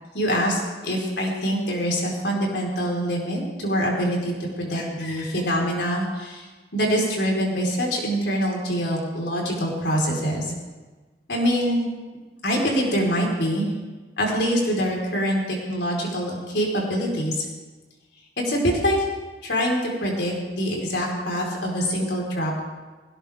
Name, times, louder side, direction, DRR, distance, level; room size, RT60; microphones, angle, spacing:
voice 1, 0.1-6.4 6.7-10.4 11.3-11.9 12.4-13.7 14.2-17.4 18.5-19.0 19.4-22.6, equal, 80° left, -1 dB, 4.4 m, -24 dB
20.0 x 17.5 x 3.6 m, 1.3 s
head